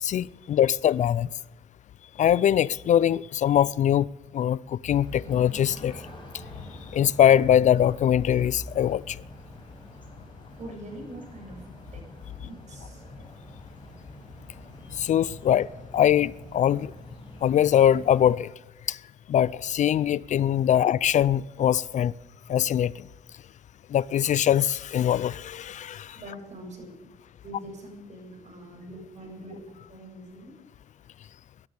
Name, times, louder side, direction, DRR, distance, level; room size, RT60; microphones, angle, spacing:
voice 1, 0.0-1.3 2.2-6.0 6.9-9.2 14.9-16.9 17.4-18.5 18.9-19.0 19.3-22.1 22.5-23.1 23.9-26.2, left 10 dB, 55° left, 0.4 m, -22 dB
sound 1, 4.9-18.3, left 1 dB, 35° left, 5.6 m, -45 dB
voice 2, 10.5-12.1 12.4-13.0 26.1-26.9 27.4-30.6, right 1 dB, 50° right, 7.1 m, -43 dB
13.0 x 11.5 x 8.6 m
supercardioid pair, 55°, 15 cm